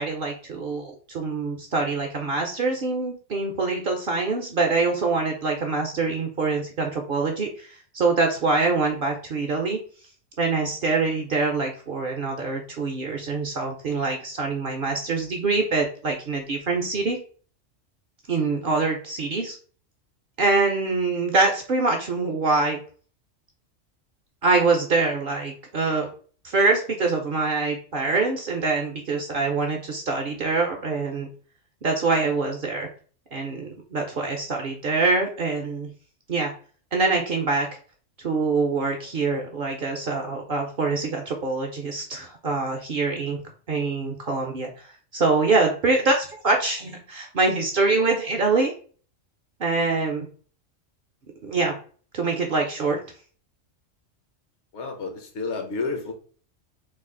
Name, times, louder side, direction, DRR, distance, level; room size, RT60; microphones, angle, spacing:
voice 1, 0.0-7.7 7.9-9.8 10.4-17.2 18.3-19.6 20.4-22.8 24.4-26.1 26.4-31.3 31.8-32.9 33.3-35.9 36.3-36.5 36.9-37.7 38.2-43.4 43.7-44.9 45.1-48.7 49.6-50.3 51.4-51.7 52.1-53.0, right 3 dB, 55° right, 2 dB, 0.7 m, -24 dB
voice 2, 54.7-56.1, left 4 dB, 65° left, 3 dB, 1.1 m, -30 dB
3.3 x 2.4 x 3.7 m, 0.42 s
omnidirectional pair, 1.3 m